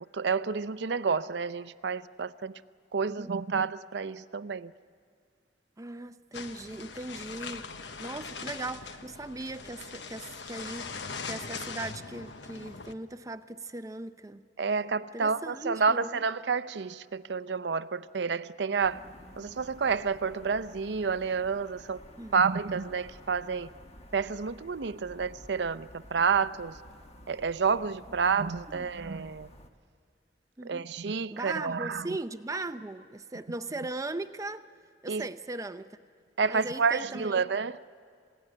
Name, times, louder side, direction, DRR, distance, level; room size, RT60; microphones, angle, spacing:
voice 1, 0.0-2.5 2.9-4.7 14.6-19.0 19.4-22.0 22.3-23.7 24.1-26.8 27.3-29.5 30.6-32.1 35.1-35.3 36.4-37.8, right 5 dB, 70° right, 0.6 m, -29 dB
voice 2, 5.8-7.7 8.0-14.4 15.1-16.2 22.2-22.3 28.7-28.9 30.6-30.9 31.3-34.7 35.0-36.0 36.4-37.4, right 2 dB, 20° right, 0.5 m, -38 dB
sound 1, 6.3-12.9, left 5 dB, 75° left, 1.1 m, -41 dB
sound 2, 18.8-29.7, equal, 35° left, 1.3 m, -52 dB
28.0 x 16.5 x 9.9 m
head